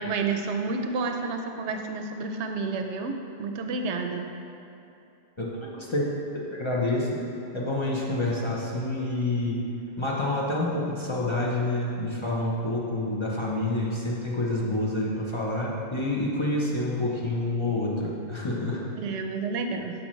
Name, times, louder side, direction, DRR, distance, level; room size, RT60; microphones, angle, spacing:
voice 1, 0.0-3.1 3.4-4.4 19.0-19.9, right 4 dB, 90° right, 5 dB, 0.9 m, -30 dB
voice 2, 5.7-6.1 6.5-7.2 7.5-9.6 10.0-18.8, left 2 dB, 30° left, -4 dB, 0.8 m, -28 dB
7.8 x 5.9 x 3.2 m, 2.9 s
omnidirectional pair, 1.1 m